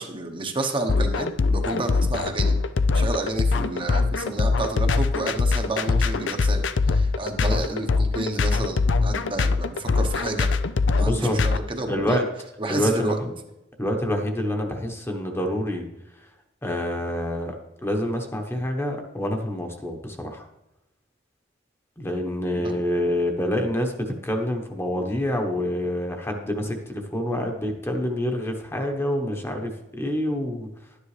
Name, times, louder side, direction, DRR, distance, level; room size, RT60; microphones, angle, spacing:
voice 1, 0.0-2.5 2.9-10.5 10.9-12.2 12.6-13.2 22.6-22.7, right 2 dB, 30° right, 3 dB, 1.0 m, -30 dB
sound 1, 0.9-11.6, left 4 dB, 70° left, 0.5 m, -22 dB
voice 2, 11.0-11.4 11.9-12.3 12.7-13.3 13.8-15.9 16.2-16.3 16.6-17.5 17.8-20.4 22.0-30.9, left 1 dB, 15° left, 3 dB, 1.1 m, -27 dB
12.0 x 9.9 x 3.3 m, 0.92 s
head